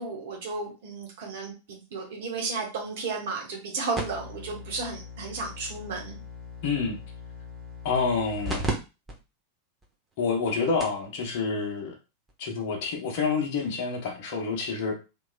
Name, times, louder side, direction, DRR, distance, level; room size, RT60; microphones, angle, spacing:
voice 1, 0.0-6.2, right 4 dB, 55° right, -1 dB, 1.2 m, -33 dB
sound 1, 3.9-8.7 9.1-9.2 9.8-9.9 10.5-10.6 10.8-11.1 12.3-12.4, right 1 dB, 15° right, 1.0 m, -36 dB
voice 2, 6.6-7.0 7.8-8.6 10.2-11.9 12.4-15.0, left 5 dB, 45° left, 2 dB, 1.0 m, -28 dB
3.2 x 2.8 x 2.3 m, 0.29 s
figure-of-eight pair, 90°, 0 cm